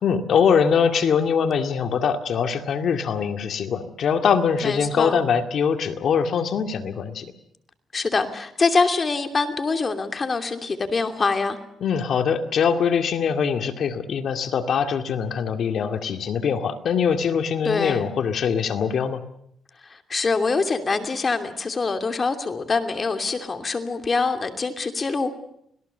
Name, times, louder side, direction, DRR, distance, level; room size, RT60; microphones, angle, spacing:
voice 1, 0.0-7.3 11.8-19.2, left 6 dB, 60° left, 7 dB, 2.2 m, -23 dB
voice 2, 4.6-5.2 7.9-11.6 17.6-18.1 19.9-25.3, left 4 dB, 35° left, 6 dB, 2.8 m, -24 dB
26.0 x 18.0 x 6.8 m, 0.73 s
cardioid pair, 90°, 0 cm